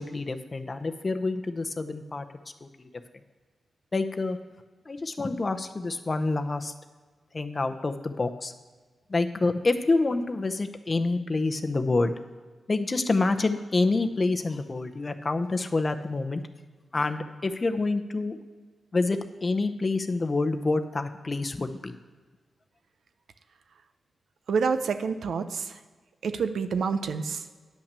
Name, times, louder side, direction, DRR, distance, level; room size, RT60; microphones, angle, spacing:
voice 1, 0.0-2.3 2.6-2.9 3.9-4.4 4.9-6.7 7.3-8.5 9.1-12.1 12.7-16.4 16.9-18.4 18.9-22.0, left 3 dB, 30° left, 8 dB, 0.7 m, -27 dB
voice 2, 24.5-25.8 26.2-27.5, right 5 dB, 85° right, 10 dB, 0.6 m, -28 dB
10.5 x 5.8 x 6.8 m, 1.4 s
wide cardioid pair, 120°, 0 cm